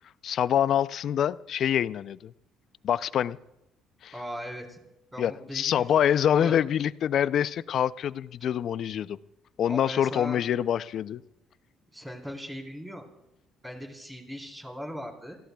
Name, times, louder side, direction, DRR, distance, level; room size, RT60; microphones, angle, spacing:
voice 1, 0.2-2.3 2.8-3.4 4.0-4.1 5.2-9.2 9.6-11.2, left 9 dB, 60° left, 16 dB, 0.4 m, -25 dB
voice 2, 4.1-4.8 5.1-5.8 6.2-6.6 9.7-10.4 11.9-13.1 13.6-15.4, equal, 10° right, 1 dB, 3.9 m, -39 dB
30.0 x 16.5 x 2.3 m, 0.90 s
cardioid pair, 90°, 0 cm